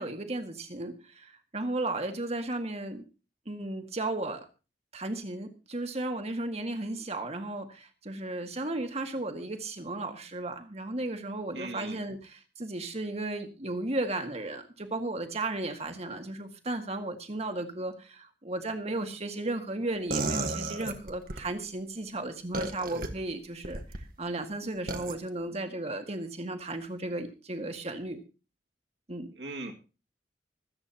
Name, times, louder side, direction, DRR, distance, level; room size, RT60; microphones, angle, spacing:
voice 1, 0.0-3.0 3.5-4.4 4.9-28.2 29.1-29.3, right 2 dB, 40° right, 6 dB, 1.9 m, -35 dB
voice 2, 11.5-12.0 29.4-29.7, right 2 dB, 75° right, 3 dB, 2.2 m, -38 dB
sound 1, 20.1-21.4 22.5-23.1 23.6-24.0 24.9-25.1, right 3 dB, 55° right, 1.5 m, -32 dB
25.5 x 8.7 x 2.9 m, 0.33 s
head